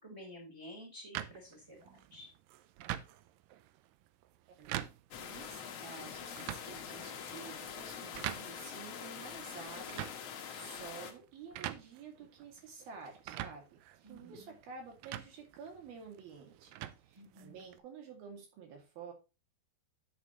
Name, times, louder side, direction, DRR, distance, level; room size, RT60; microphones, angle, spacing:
voice 1, 0.0-2.3 14.0-14.6 17.1-17.7, equal, 5° right, -1 dB, 3.2 m, -51 dB
sound 1, 1.1-17.8, right 13 dB, 90° right, 1.9 m, -46 dB
sound 2, 5.1-11.1, left 7 dB, 80° left, 1.4 m, -45 dB
voice 2, 5.2-16.7 17.0-19.1, right 5 dB, 65° right, 2 dB, 4.1 m, -51 dB
10.0 x 7.6 x 3.1 m, 0.30 s
omnidirectional pair, 4.7 m